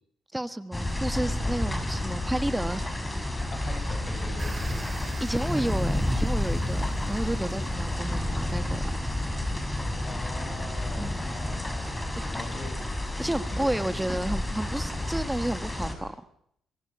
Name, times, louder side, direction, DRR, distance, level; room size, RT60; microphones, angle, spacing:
voice 1, 0.3-2.8 5.2-8.9 10.9-11.3 13.2-16.1, right 1 dB, 10° right, 10 dB, 1.3 m, -31 dB
sound 1, 0.7-15.9, left 1 dB, 10° left, 6.0 m, -30 dB
voice 2, 3.5-5.6 10.1-12.7 13.2-13.8, left 3 dB, 40° left, 9 dB, 7.1 m, -42 dB
sound 2, 4.2-7.4, right 3 dB, 25° right, 4.3 m, -46 dB
26.5 x 24.5 x 8.6 m, 0.73 s
cardioid pair, 90°, 0 cm